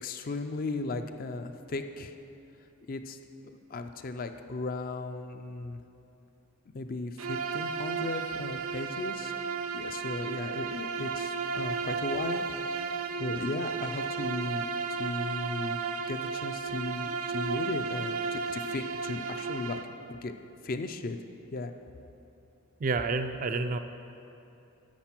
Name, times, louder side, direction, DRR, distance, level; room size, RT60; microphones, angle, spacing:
voice 1, 0.0-2.1 2.9-3.2 3.7-5.8 6.7-9.3 9.7-12.5 13.2-15.8 16.1-19.8 20.1-20.3 20.6-21.2 21.5-21.7, left 3 dB, 40° left, 8 dB, 0.4 m, -36 dB
Bowed string instrument, 7.2-20.0, right 5 dB, 80° right, 0.6 m, -34 dB
voice 2, 22.8-23.8, right 3 dB, 40° right, 8 dB, 0.4 m, -29 dB
10.0 x 6.7 x 5.9 m, 2.8 s
head